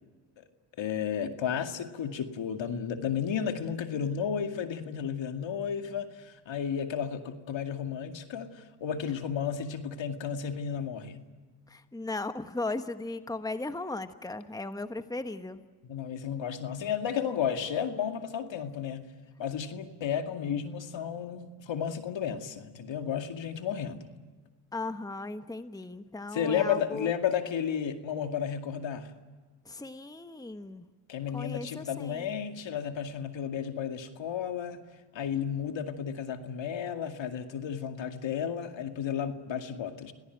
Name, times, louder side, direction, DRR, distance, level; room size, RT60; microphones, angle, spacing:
voice 1, 0.8-11.3 15.9-19.1 19.4-24.1 26.3-29.1 31.1-34.8 35.1-40.1, left 8 dB, 65° left, 6 dB, 2.3 m, -33 dB
voice 2, 11.7-15.6 24.7-27.1 29.6-30.9 31.3-32.3, left 2 dB, 10° left, 10 dB, 1.3 m, -37 dB
28.0 x 18.0 x 9.3 m, 1.4 s
supercardioid pair, 60°, 48 cm